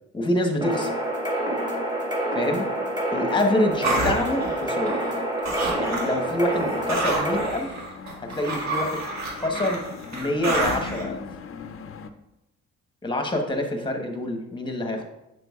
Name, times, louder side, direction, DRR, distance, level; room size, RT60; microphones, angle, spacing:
voice 1, 0.1-0.9 2.3-2.7 3.1-5.0 5.8-7.7 8.2-9.0 9.3-9.8 10.1-11.2 13.0-15.0, left 1 dB, 15° left, 3 dB, 1.1 m, -26 dB
sound 1, 0.6-7.5, right 1 dB, 15° right, 1.8 m, -27 dB
sound 2, 3.8-5.2 5.4-6.2 6.5-11.0, right 2 dB, 60° right, 1.8 m, -29 dB
sound 3, 5.7-12.1, left 6 dB, 45° left, 0.6 m, -40 dB
7.6 x 6.0 x 2.4 m, 0.90 s
cardioid pair, 90°, 30 cm